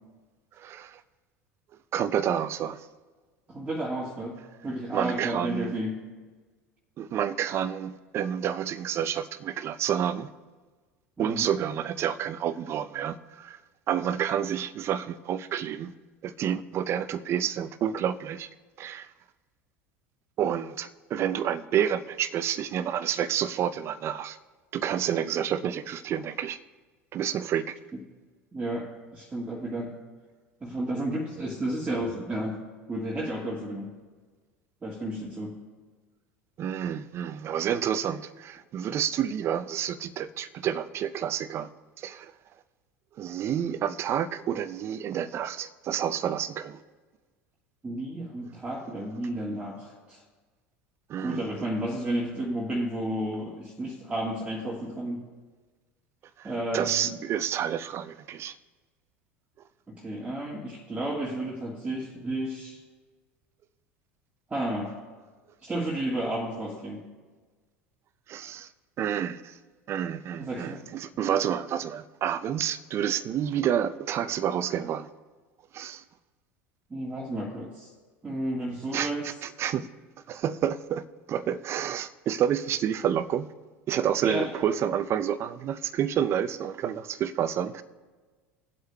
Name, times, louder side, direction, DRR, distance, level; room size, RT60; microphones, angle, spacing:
voice 1, 0.6-1.0 1.9-2.9 4.9-5.7 7.0-10.3 11.2-13.6 13.9-15.9 16.2-18.5 18.8-19.1 20.4-24.4 24.7-26.6 27.1-27.8 36.6-41.7 42.0-42.3 43.2-46.8 51.1-51.4 56.4-58.6 68.3-68.7 69.0-69.6 69.9-75.1 75.7-76.0 78.9-79.9 80.3-81.0 81.3-83.5 83.9-87.8, right 9 dB, 40° right, 14 dB, 0.5 m, -29 dB
voice 2, 3.5-4.4 4.6-6.0 11.2-11.5 28.5-29.9 30.6-32.6 32.9-33.9 34.8-35.5 47.8-50.2 51.2-55.2 56.4-57.1 59.9-62.8 64.5-65.0 65.6-67.0 70.4-70.8 76.9-77.9 78.2-79.3 84.2-84.5, right 1 dB, 15° right, -4 dB, 1.5 m, -32 dB
20.0 x 7.9 x 2.2 m, 1.4 s
figure-of-eight pair, 75°, 7 cm